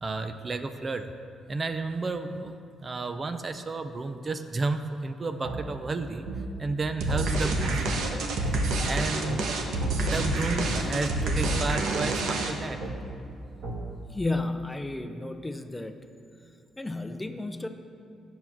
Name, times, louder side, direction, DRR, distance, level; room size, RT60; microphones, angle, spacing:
voice 1, 0.0-1.1 1.5-6.3 6.6-8.0 8.4-9.6 10.0-12.8, right 3 dB, 30° right, 9 dB, 0.6 m, -32 dB
sound 1, 5.4-5.6 6.3-6.4 7.1-7.2 7.6-7.8 8.4-8.6 9.3-9.4 9.8-10.0 10.6-10.8 11.4-11.6 12.0-12.1 12.8-12.9 13.6-13.8, right 2 dB, 65° right, 2.0 m, -34 dB
sound 2, 7.0-12.8, right 2 dB, 80° right, 1.2 m, -28 dB
voice 2, 14.1-16.0 16.8-17.7, left 2 dB, 15° left, 7 dB, 0.6 m, -32 dB
10.0 x 7.2 x 6.0 m, 2.6 s
cardioid pair, 90°, 0 cm